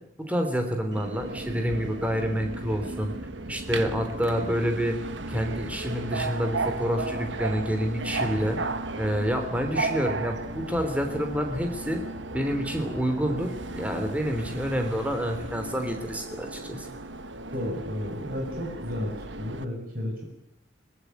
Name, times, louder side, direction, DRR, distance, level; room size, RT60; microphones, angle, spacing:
voice 1, 0.2-3.1 3.5-5.0 5.3-8.6 9.0-12.0 12.3-16.9, equal, 5° right, 5 dB, 3.3 m, -28 dB
Subway metro underground, 0.9-19.6, right 3 dB, 80° right, 1.4 m, -35 dB
sound 1, 1.6-15.6, equal, 75° left, 5.4 m, -45 dB
voice 2, 17.5-20.2, left 1 dB, 50° right, -1 dB, 6.7 m, -33 dB
22.0 x 21.0 x 9.4 m, 0.76 s
head